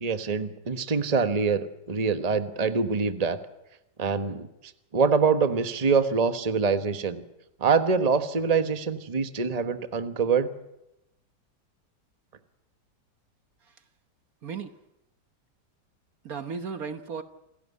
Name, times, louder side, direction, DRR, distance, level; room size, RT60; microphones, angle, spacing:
voice 1, 0.0-3.4 4.0-4.5 4.9-7.2 7.6-10.5, right 5 dB, 25° right, 9 dB, 1.2 m, -25 dB
voice 2, 14.4-14.8 16.2-17.2, right 5 dB, 60° right, 9 dB, 1.6 m, -35 dB
27.5 x 17.0 x 8.4 m, 0.88 s
omnidirectional pair, 1.8 m